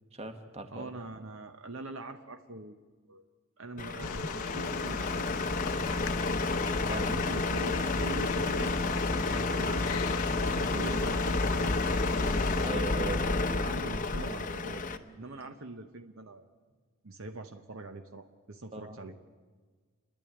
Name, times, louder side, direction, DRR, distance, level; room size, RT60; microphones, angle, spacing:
voice 1, 0.1-0.9 6.9-7.1 12.5-13.4 18.7-19.0, right 2 dB, 30° right, 7 dB, 1.4 m, -39 dB
voice 2, 0.7-2.8 3.1-3.2 3.6-6.1 6.9-8.8 9.1-12.3 13.2-14.9 15.2-16.4 17.0-19.2, right 2 dB, 65° right, 7 dB, 0.9 m, -43 dB
Truck, 3.8-15.0, left 3 dB, 40° left, 0.8 m, -30 dB
Wild animals, 4.0-12.7, left 6 dB, 75° left, 0.6 m, -41 dB
sound 1, 8.2-15.5, right 3 dB, 10° right, 2.1 m, -57 dB
28.5 x 10.5 x 9.8 m, 1.5 s
head